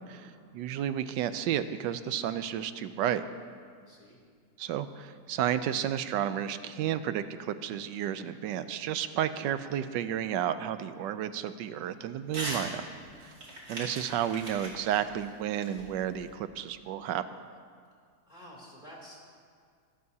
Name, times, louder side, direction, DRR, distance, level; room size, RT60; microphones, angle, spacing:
voice 1, 0.5-3.2 4.6-12.8 13.2-13.3 13.7-17.2, right 10 dB, 80° right, 12 dB, 1.2 m, -32 dB
voice 2, 3.8-4.2 18.3-19.3, equal, 25° left, -4 dB, 3.0 m, -50 dB
Crumpling crinkling / Tearing, 12.3-12.7 13.0-16.3, right 1 dB, 50° right, 3.0 m, -40 dB
23.0 x 12.0 x 2.8 m, 2.1 s
omnidirectional pair, 1.9 m